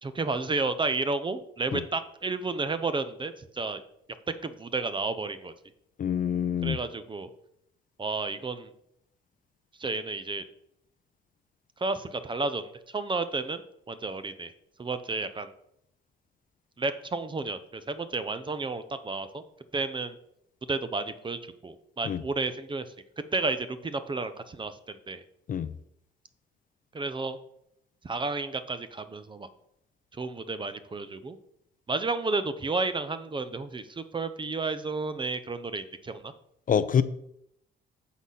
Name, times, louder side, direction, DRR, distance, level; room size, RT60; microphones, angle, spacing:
voice 1, 0.0-3.8 4.4-5.5 6.6-7.3 8.0-8.7 9.8-10.4 11.8-13.6 13.9-14.5 14.8-15.5 16.8-19.4 19.7-20.2 20.7-22.9 23.3-25.2 26.9-27.4 28.0-29.5 30.1-31.4 31.9-36.3, right 3 dB, 25° right, 12 dB, 0.6 m, -32 dB
voice 2, 6.0-6.8 22.1-22.2 25.5-25.7 36.7-37.0, left 8 dB, 45° left, 14 dB, 0.4 m, -26 dB
8.1 x 4.0 x 5.5 m, 0.75 s
cardioid pair, 90°, 20 cm